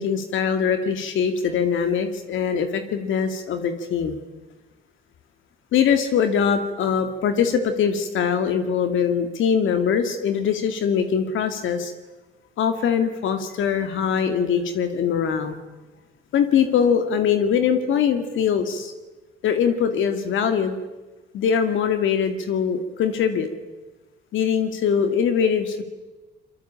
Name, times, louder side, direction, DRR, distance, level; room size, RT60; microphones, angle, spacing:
voice 1, 0.0-4.2 5.7-11.9 12.6-15.6 16.3-18.9 19.4-20.8 21.3-23.5 24.3-25.8, left 7 dB, 80° left, 8 dB, 2.3 m, -22 dB
25.5 x 23.0 x 8.8 m, 1.2 s
cardioid pair, 90°, 20 cm